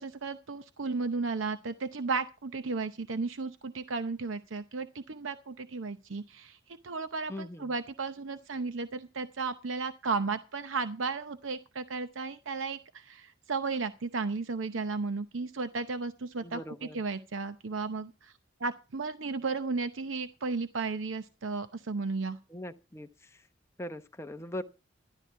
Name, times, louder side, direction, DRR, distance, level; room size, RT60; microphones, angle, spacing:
voice 1, 0.0-18.3 18.6-22.4, right 4 dB, 85° right, 0.8 m, -34 dB
voice 2, 7.3-7.7 16.4-17.0 22.5-23.4 23.8-24.6, left 1 dB, 15° left, 0.8 m, -41 dB
13.0 x 12.5 x 4.6 m
head